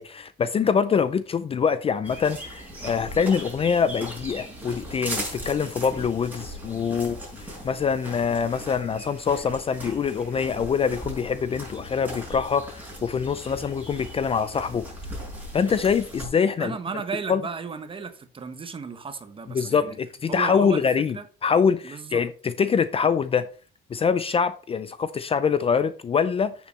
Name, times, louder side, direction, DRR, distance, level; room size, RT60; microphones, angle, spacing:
voice 1, 0.0-14.9 15.5-16.7 17.3-17.4 19.5-21.2 21.4-23.5 23.9-26.5, left 6 dB, 30° left, 0.5 m, -24 dB
sound 1, 2.0-16.3, equal, 10° right, 5.6 m, -38 dB
voice 2, 16.6-20.0 20.3-20.8 21.1-21.3 21.8-22.2, right 5 dB, 25° right, 1.2 m, -34 dB
8.1 x 7.1 x 4.3 m
cardioid pair, 130°, 20 cm